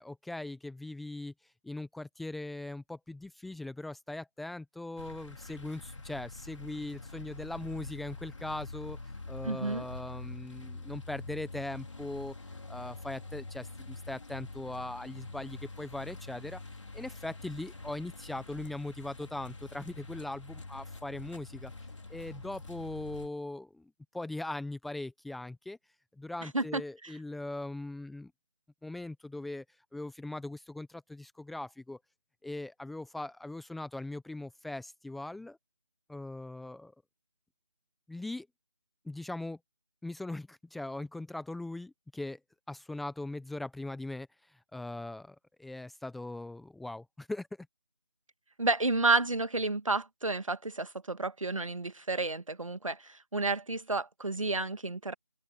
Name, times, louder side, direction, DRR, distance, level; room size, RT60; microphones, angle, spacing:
voice 1, 0.0-1.3 1.6-9.0 9.3-12.3 12.7-16.6 16.9-21.7 22.1-25.8 26.2-28.3 28.8-29.6 29.9-32.0 32.4-35.6 36.1-36.9 38.1-38.5 39.0-39.6 40.0-42.4 42.7-44.3 44.7-47.5, left 2 dB, ahead, 0.6 m, -40 dB
sound 1, 5.0-23.3, left 3 dB, 65° left, 3.0 m, -45 dB
voice 2, 9.4-9.8 26.5-27.1 48.6-55.1, right 3 dB, 80° right, 1.6 m, -31 dB
figure-of-eight pair, 160°, 17 cm